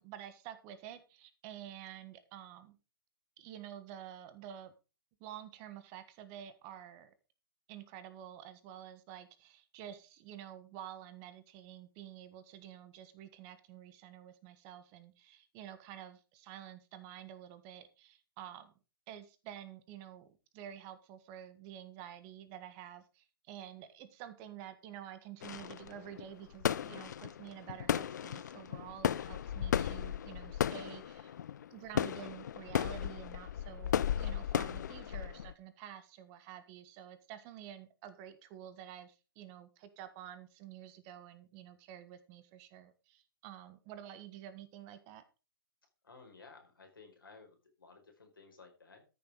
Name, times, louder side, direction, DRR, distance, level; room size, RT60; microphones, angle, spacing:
voice 1, 0.0-2.8 3.4-4.7 5.2-7.1 7.7-18.7 19.1-20.3 20.5-31.4 31.7-45.2, right 10 dB, 30° right, 12 dB, 1.5 m, -49 dB
sound 1, 25.4-35.5, left 9 dB, 50° left, 0.6 m, -35 dB
voice 2, 46.0-49.0, left 4 dB, 70° left, 3 dB, 4.7 m, -56 dB
13.5 x 7.0 x 4.9 m, 0.32 s
figure-of-eight pair, 120°, 12 cm